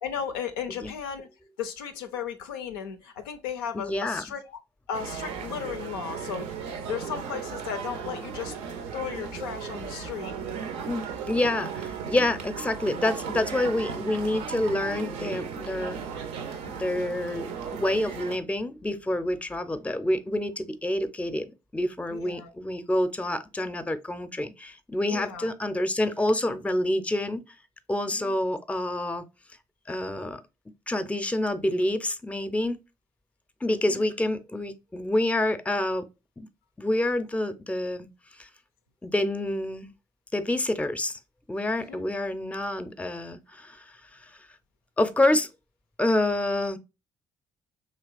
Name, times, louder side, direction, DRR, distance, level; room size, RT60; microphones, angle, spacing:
voice 1, 0.0-1.3 1.6-4.6 4.9-6.6 6.9-8.5 8.9-10.3 22.1-22.5 25.1-25.5 28.1-28.4 33.7-34.1 41.7-42.0, left 7 dB, 90° left, 0.4 m, -35 dB
voice 2, 3.7-4.2 10.9-16.0 16.7-27.4 27.9-29.3 29.9-30.4 30.9-32.8 33.6-36.1 36.4-36.5 36.8-38.1 38.4-38.5 39.0-39.9 40.3-41.2 41.5-43.8 44.2-44.3 45.0-45.5 46.0-46.8, left 1 dB, 10° left, 0.5 m, -27 dB
sound 1, 4.9-18.4, right 6 dB, 75° right, 0.5 m, -36 dB
3.2 x 2.8 x 2.4 m
hypercardioid pair, 45°, 11 cm